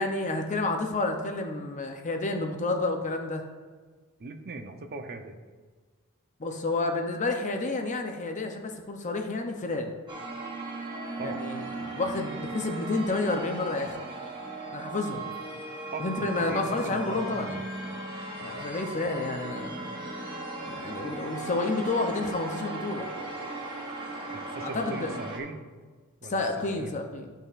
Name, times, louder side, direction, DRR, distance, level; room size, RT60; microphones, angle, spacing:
voice 1, 0.0-3.4 6.4-9.9 11.2-14.0 14.7-15.3 16.0-17.6 18.4-19.7 20.7-23.1 24.6-25.1 26.2-27.3, left 2 dB, 35° left, 4 dB, 0.6 m, -30 dB
voice 2, 4.2-5.4 11.2-11.4 15.9-17.7 18.5-18.7 24.3-25.6 26.2-27.0, right 3 dB, 45° right, 6 dB, 0.6 m, -40 dB
sound 1, 10.1-25.4, right 2 dB, 20° right, 1.0 m, -37 dB
11.5 x 5.4 x 2.5 m, 1.4 s
head